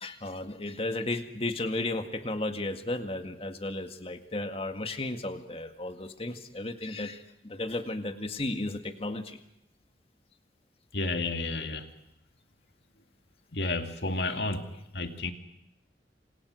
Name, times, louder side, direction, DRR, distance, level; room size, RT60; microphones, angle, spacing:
voice 1, 0.0-9.4 14.2-14.4, left 2 dB, 35° left, 7 dB, 2.0 m, -34 dB
voice 2, 10.9-11.9 13.5-14.6 14.9-15.3, left 2 dB, 70° left, 6 dB, 2.5 m, -31 dB
27.5 x 27.0 x 6.5 m, 0.83 s
head